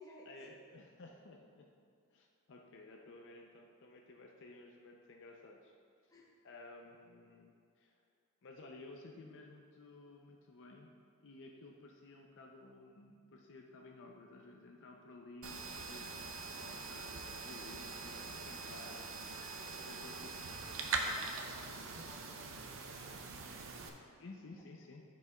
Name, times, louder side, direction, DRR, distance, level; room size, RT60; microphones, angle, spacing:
voice 1, 0.3-1.7 2.1-5.7 6.4-8.0 8.4-10.9 11.2-19.4 19.8-21.1 21.9-22.1 24.2-25.0, left 2 dB, 55° left, 0 dB, 0.5 m, -55 dB
sound 1, 15.4-23.9, right 4 dB, 65° right, 0.6 m, -43 dB
voice 2, 19.4-20.2 20.8-22.7 24.5-24.6, left 1 dB, 15° left, -4 dB, 1.1 m, -58 dB
13.0 x 5.2 x 2.3 m, 2.3 s
head